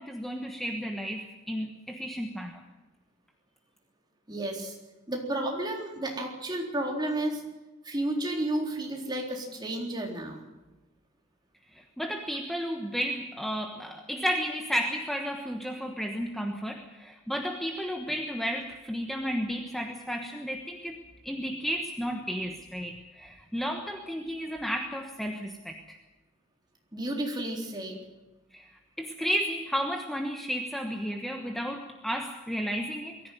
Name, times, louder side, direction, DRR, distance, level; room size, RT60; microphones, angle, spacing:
voice 1, 0.0-2.6 12.0-26.0 28.5-28.7 29.0-33.2, equal, ahead, 3 dB, 1.2 m, -33 dB
voice 2, 4.3-4.8 5.1-7.4 7.8-10.4 26.9-28.0, right 1 dB, 20° right, 0 dB, 3.9 m, -32 dB
22.5 x 15.0 x 9.4 m, 1.1 s
head